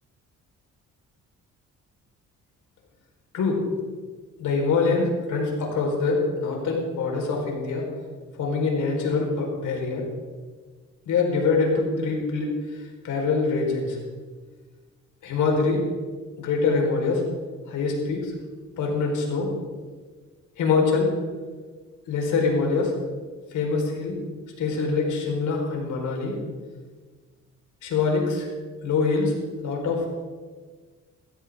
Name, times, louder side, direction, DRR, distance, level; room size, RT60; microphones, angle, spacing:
voice 1, 4.4-7.8 8.4-10.0 11.0-14.0 15.2-15.8 16.4-17.2 17.7-18.3 18.8-19.5 20.6-21.1 22.1-22.9 23.5-24.1 24.6-26.3 27.8-28.5 28.8-29.3 29.6-30.1, left 4 dB, 75° left, 0 dB, 4.6 m, -24 dB
16.0 x 15.5 x 3.7 m, 1.4 s
cardioid pair, 90°, 30 cm